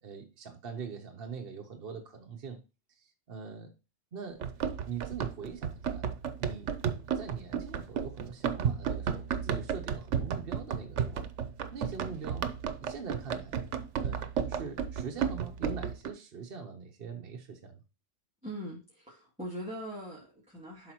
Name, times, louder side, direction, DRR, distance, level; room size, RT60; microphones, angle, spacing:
voice 1, 0.0-2.6 3.0-3.7 4.1-4.4 4.9-6.1 6.4-6.7 7.1-11.3 11.7-12.5 12.8-13.6 14.0-17.8, right 6 dB, 55° right, 1.0 m, -43 dB
Run, 4.4-16.1, right 7 dB, 80° right, 1.0 m, -33 dB
voice 2, 18.4-20.9, equal, 5° right, 2.2 m, -41 dB
11.5 x 4.1 x 2.9 m
omnidirectional pair, 1.2 m